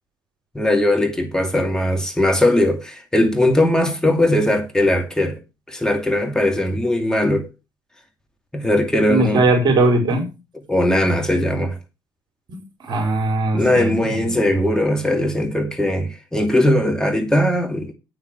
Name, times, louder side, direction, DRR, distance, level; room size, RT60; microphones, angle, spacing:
voice 1, 0.5-5.4 5.7-7.5 8.5-9.5 10.7-11.8 13.5-17.9, left 1 dB, 5° left, 2.4 m, -19 dB
voice 2, 9.1-10.3 12.5-14.4, right 2 dB, 45° right, 4.7 m, -20 dB
8.8 x 7.8 x 6.2 m
figure-of-eight pair, 50°, 11 cm